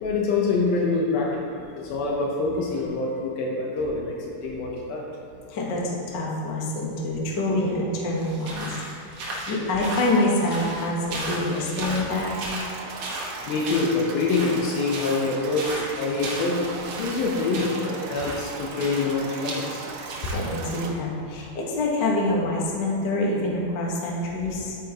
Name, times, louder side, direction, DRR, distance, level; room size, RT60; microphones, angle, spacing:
voice 1, 0.0-5.1 13.5-19.8, left 3 dB, 80° left, -2 dB, 2.8 m, -26 dB
voice 2, 5.5-8.7 9.1-12.3 20.3-24.8, left 1 dB, 60° left, -3 dB, 1.1 m, -26 dB
Walking - Sand, 8.1-20.9, right 2 dB, 60° right, 1.5 m, -36 dB
sound 1, 12.1-20.9, right 4 dB, 75° right, 1.9 m, -38 dB
10.0 x 9.1 x 3.0 m, 2.7 s
omnidirectional pair, 4.3 m